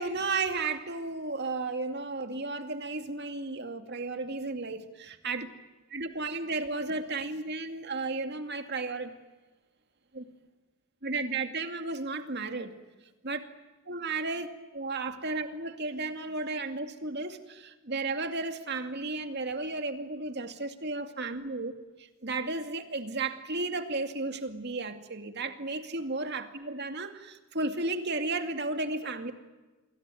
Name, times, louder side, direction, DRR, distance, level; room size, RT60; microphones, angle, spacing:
voice 1, 0.0-5.5 5.9-9.1 10.1-10.2 11.0-12.7 13.2-13.4 13.9-14.5 14.7-21.7 22.0-29.3, right 3 dB, 50° right, 7 dB, 2.4 m, -33 dB
28.0 x 22.5 x 9.3 m, 1.2 s
head